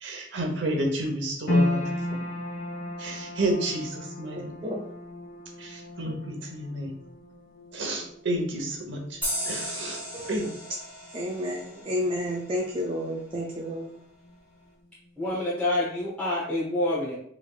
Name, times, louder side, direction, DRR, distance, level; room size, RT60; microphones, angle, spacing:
voice 1, 0.0-2.2 3.0-4.4 5.6-6.9 7.7-9.0 9.4-10.0 10.3-10.5, right 1 dB, 60° right, 2 dB, 0.9 m, -30 dB
sound 1, 1.5-13.9 14.1-15.1 15.5-15.6, left 1 dB, 70° left, 1.5 m, -34 dB
voice 2, 4.3-4.9 10.1-10.5 11.1-14.0, equal, 25° right, 0 dB, 0.4 m, -31 dB
sound 2, 9.2-12.6, equal, 10° right, 1.2 m, -35 dB
voice 3, 15.2-17.2, left 1 dB, 5° left, -9 dB, 0.9 m, -27 dB
4.7 x 3.3 x 2.4 m, 0.65 s
head